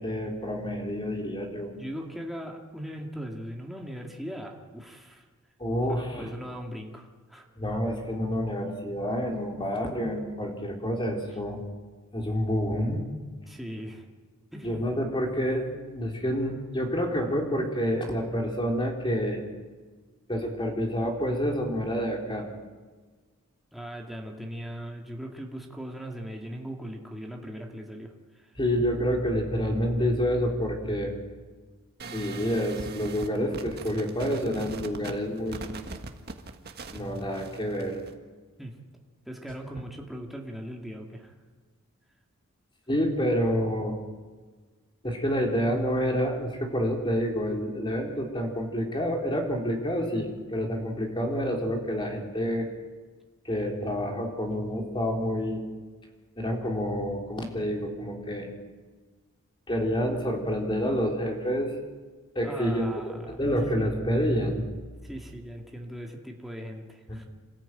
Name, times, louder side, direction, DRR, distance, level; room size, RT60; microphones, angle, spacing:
voice 1, 0.0-1.7 5.6-6.3 7.6-11.6 12.1-13.0 14.6-19.4 20.3-22.5 28.6-31.1 32.1-35.7 36.9-38.0 42.9-44.0 45.0-52.7 53.4-55.6 56.4-58.5 59.7-61.7 62.4-62.9 63.3-64.6, equal, 20° left, 1 dB, 3.6 m, -28 dB
voice 2, 1.7-5.3 6.1-7.5 11.3-11.4 13.5-14.1 14.5-14.8 23.7-28.6 38.6-38.8 39.2-41.4 62.4-63.9 65.0-67.3, equal, ahead, 0 dB, 2.1 m, -39 dB
sound 1, 32.0-38.1, right 3 dB, 45° right, 1.6 m, -41 dB
27.5 x 14.0 x 9.1 m, 1.4 s
head